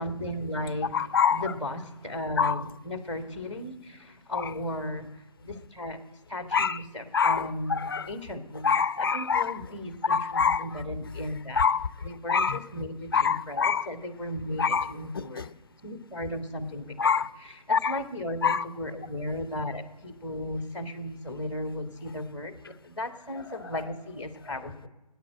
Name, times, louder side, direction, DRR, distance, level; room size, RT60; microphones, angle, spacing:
voice 1, 0.0-0.9 1.3-6.0 6.3-8.7 9.1-11.6 12.0-13.1 13.5-15.5 15.8-17.0 17.9-24.9, left 1 dB, 5° right, 1.5 m, -35 dB
voice 2, 0.9-1.6 2.4-2.7 4.3-4.5 6.5-6.9 7.1-8.1 8.6-9.7 10.0-10.8 11.5-11.9 12.3-12.8 13.1-13.9 14.6-15.5 17.0-17.3 17.7-18.0 18.4-18.7, left 6 dB, 35° left, 0.6 m, -26 dB
18.5 x 9.5 x 7.6 m
figure-of-eight pair, 155°, 20 cm